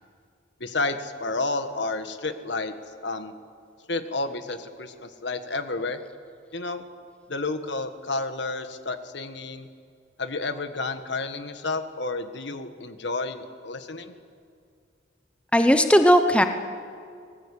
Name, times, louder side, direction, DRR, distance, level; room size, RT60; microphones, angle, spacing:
voice 1, 0.6-2.7 3.0-3.3 3.9-6.0 6.5-6.8 7.3-9.7 10.2-14.1, left 3 dB, 70° left, 9 dB, 1.6 m, -31 dB
voice 2, 15.5-16.4, equal, 5° left, 7 dB, 0.9 m, -17 dB
26.0 x 20.0 x 8.6 m, 2.3 s
head